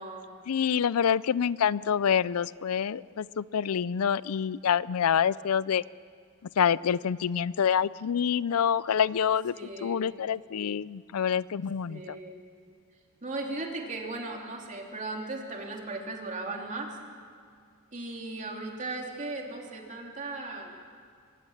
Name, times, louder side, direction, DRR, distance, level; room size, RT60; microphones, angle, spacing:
voice 1, 0.5-5.8 6.6-9.5 9.8-12.2, left 8 dB, 80° left, 20 dB, 0.4 m, -27 dB
voice 2, 9.5-10.0 11.9-12.4 13.2-16.9 17.9-20.7, right 2 dB, 35° right, 1 dB, 3.1 m, -37 dB
24.5 x 19.0 x 7.3 m, 2.2 s
head